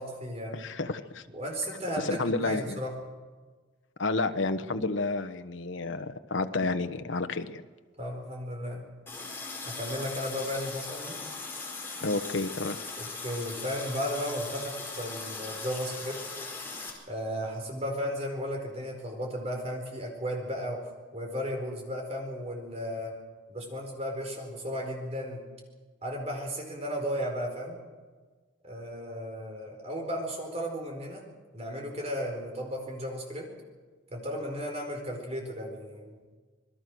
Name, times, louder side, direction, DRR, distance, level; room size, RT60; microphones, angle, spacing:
voice 1, 0.0-0.6 1.3-2.9 8.0-8.8 9.6-11.2 13.0-16.2 17.1-20.8 21.1-23.1 23.5-25.4 26.0-27.8 28.6-31.3 31.5-33.5 34.1-36.2, equal, 35° right, 2 dB, 4.6 m, -35 dB
voice 2, 0.5-1.2 2.0-2.8 4.0-7.6 12.0-12.8, left 3 dB, 75° left, 8 dB, 1.2 m, -30 dB
Water tap faucet, 9.1-16.9, left 4 dB, 10° left, 4.7 m, -39 dB
27.0 x 20.5 x 6.3 m, 1.4 s
head